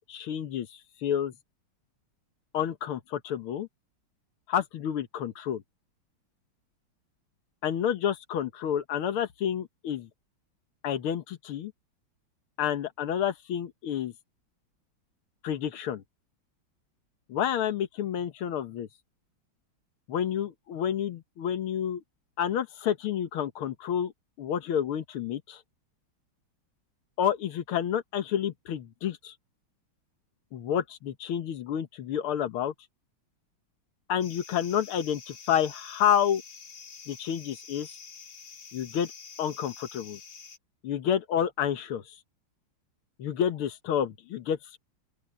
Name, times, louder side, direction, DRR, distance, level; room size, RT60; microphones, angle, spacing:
voice 1, 0.1-1.3 2.5-3.7 4.5-5.6 7.6-10.1 10.8-11.7 12.6-14.1 15.4-16.0 17.3-18.9 20.1-22.0 22.4-24.1 24.4-25.6 27.2-29.4 30.5-32.7 34.1-36.4 37.1-37.9 38.7-39.1 39.4-40.2 40.8-42.2 43.2-44.8, left 9 dB, 90° left, 2.1 m, -29 dB
sound 1, 34.2-40.6, left 5 dB, 65° left, 2.9 m, -47 dB
open air
omnidirectional pair, 2.3 m